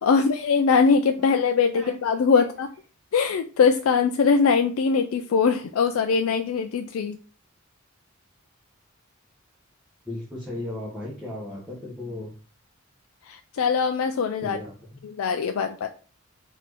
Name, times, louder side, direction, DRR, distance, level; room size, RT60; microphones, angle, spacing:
voice 1, 0.0-2.7 3.1-7.2 13.2-14.6 15.0-15.9, left 5 dB, 75° left, 7 dB, 0.4 m, -22 dB
voice 2, 10.0-12.3 14.4-15.0, left 1 dB, 5° right, -7 dB, 1.1 m, -36 dB
4.2 x 2.7 x 4.7 m, 0.39 s
head